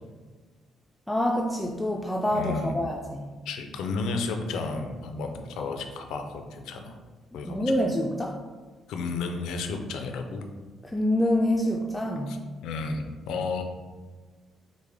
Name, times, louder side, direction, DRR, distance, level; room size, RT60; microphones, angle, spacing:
voice 1, 1.1-3.3 7.4-8.3 10.8-12.3, left 1 dB, 10° left, 0 dB, 0.3 m, -26 dB
voice 2, 2.3-2.8 3.5-7.0 7.3-7.6 8.9-10.5 12.3-12.4 12.6-13.6, left 4 dB, 85° left, 5 dB, 0.4 m, -32 dB
4.8 x 2.1 x 3.4 m, 1.4 s
cardioid pair, 90°, 0 cm